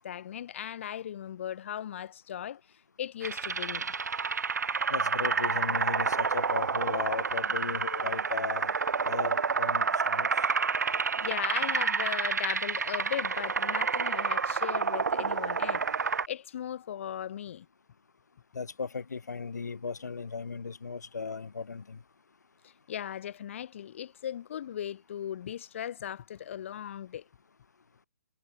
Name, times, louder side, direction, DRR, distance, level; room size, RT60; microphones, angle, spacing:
voice 1, 0.0-2.6 3.0-3.9 11.2-15.8 16.3-17.7 22.6-27.2, left 10 dB, 45° left, 2.0 m, -37 dB
dimpled stream, 3.2-16.3, right 5 dB, 75° right, 1.3 m, -29 dB
voice 2, 4.9-8.7 9.0-10.3 18.5-22.0, left 5 dB, 75° left, 5.6 m, -36 dB
hypercardioid pair, 145°, 9 cm